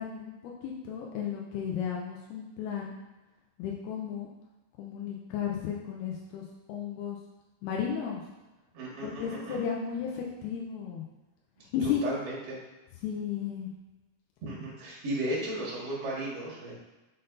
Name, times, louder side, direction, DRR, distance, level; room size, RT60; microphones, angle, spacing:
voice 1, 0.0-2.9 3.6-4.3 4.8-6.4 6.7-7.2 7.6-8.2 9.0-11.1 11.7-12.0 13.0-13.7, left 8 dB, 80° left, -2 dB, 2.5 m, -34 dB
voice 2, 8.7-9.6 11.8-12.6 14.4-16.7, right 1 dB, 50° right, -5 dB, 2.3 m, -35 dB
6.5 x 3.9 x 4.0 m, 1.1 s
omnidirectional pair, 4.8 m